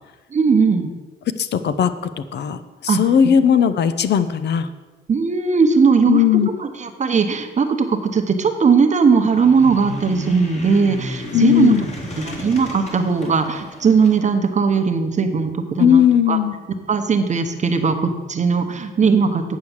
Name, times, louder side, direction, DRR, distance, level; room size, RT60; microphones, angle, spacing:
voice 1, 0.3-0.9 2.9-3.0 5.1-6.2 6.6-11.7 12.2-16.4 16.9-19.6, right 5 dB, 35° right, 6 dB, 0.9 m, -18 dB
voice 2, 1.4-4.7 6.1-6.5 11.3-11.9 15.8-16.6, left 9 dB, 60° left, 12 dB, 0.6 m, -17 dB
sound 1, 9.2-14.2, left 1 dB, 35° left, 2.0 m, -32 dB
8.2 x 4.8 x 7.1 m, 1.2 s
cardioid pair, 90°, 20 cm